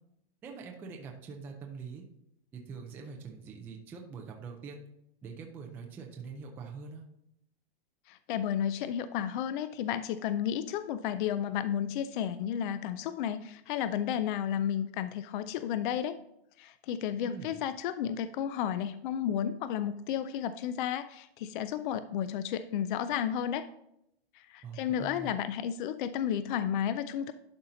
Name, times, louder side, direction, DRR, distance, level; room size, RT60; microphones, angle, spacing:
voice 1, 0.4-2.0 2.5-4.9 5.2-7.1 17.3-17.6 24.6-25.3, right 5 dB, 5° right, 2 dB, 0.3 m, -44 dB
voice 2, 8.1-16.2 16.6-23.7 24.3-27.3, left 9 dB, 55° left, 12 dB, 0.5 m, -32 dB
11.5 x 4.2 x 3.8 m, 0.78 s
supercardioid pair, 155°, 31 cm